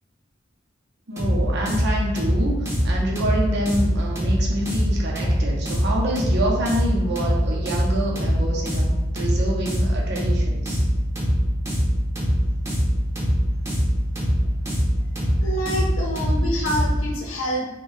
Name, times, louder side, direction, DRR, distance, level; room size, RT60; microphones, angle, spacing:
voice 1, 1.1-8.9 9.1-10.8, right 1 dB, 60° right, -2 dB, 0.6 m, -27 dB
sound 1, 1.2-17.1, equal, 15° right, 0.6 m, -22 dB
voice 2, 15.4-17.7, equal, 85° left, -1 dB, 0.6 m, -27 dB
2.7 x 2.2 x 3.1 m, 1.0 s
head